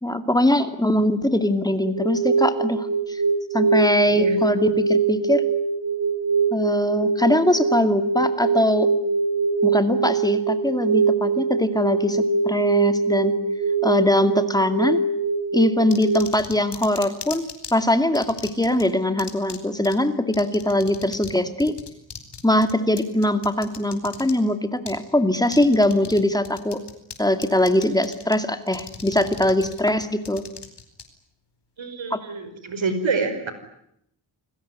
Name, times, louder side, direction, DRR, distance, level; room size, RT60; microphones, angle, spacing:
voice 1, 0.0-3.2 3.5-5.5 6.5-8.9 9.6-13.3 13.8-15.0 15.5-21.8 22.4-26.8 27.2-30.4 32.1-32.2, left 1 dB, 10° left, 9 dB, 2.4 m, -21 dB
sound 1, 1.8-16.2, right 4 dB, 45° right, 4.1 m, -23 dB
voice 2, 4.0-4.4 31.8-33.5, right 4 dB, 75° right, 10 dB, 5.2 m, -27 dB
sound 2, 15.9-17.7 18.1-18.8 19.2-19.6 19.8-19.9 20.3-21.3 21.6-24.3 24.9-25.0 25.5-26.2 26.4-27.1 27.4-28.3 28.7-31.0, left 6 dB, 60° left, 4.6 m, -37 dB
29.0 x 21.0 x 9.5 m, 0.75 s
wide cardioid pair, 160°, 47 cm